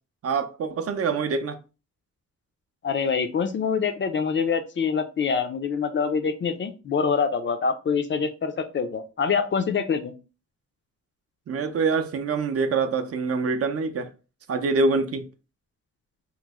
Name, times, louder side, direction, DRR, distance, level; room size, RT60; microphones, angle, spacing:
voice 1, 0.2-1.6 11.5-14.1 14.5-15.2, right 4 dB, 55° right, 0.5 m, -25 dB
voice 2, 2.8-10.1, left 6 dB, 40° left, 0.4 m, -25 dB
3.0 x 2.0 x 3.4 m
cardioid pair, 105°, 30 cm